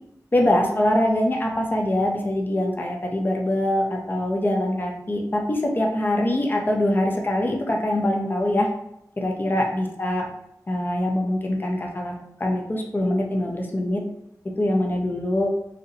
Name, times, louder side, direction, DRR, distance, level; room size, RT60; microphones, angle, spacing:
voice 1, 0.3-8.7 9.2-10.3 10.7-12.1 12.4-14.0 14.6-15.5, left 1 dB, 30° left, 0 dB, 0.5 m, -23 dB
2.7 x 2.1 x 2.6 m, 0.80 s
wide cardioid pair, 60°, 7 cm